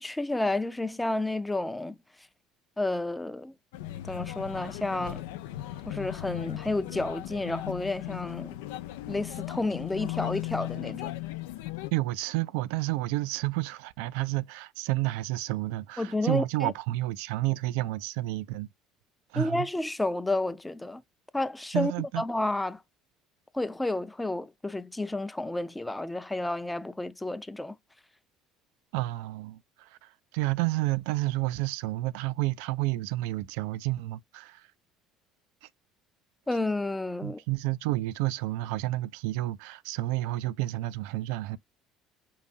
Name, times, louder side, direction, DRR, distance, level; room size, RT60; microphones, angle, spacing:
voice 1, 0.0-2.0 2.8-3.5 4.0-5.2 5.9-8.6 9.1-11.1 16.0-16.7 19.4-21.0 21.3-22.8 23.5-27.8 36.5-37.4, left 2 dB, 10° left, 0.6 m, -31 dB
sound 1, 3.7-11.9, left 15 dB, 70° left, 0.4 m, -37 dB
voice 2, 11.9-18.7 19.3-19.7 21.7-22.2 28.9-34.7 35.6-35.7 37.2-41.6, right 18 dB, 65° right, 0.3 m, -30 dB
5.6 x 2.6 x 2.5 m
figure-of-eight pair, 60°, 0 cm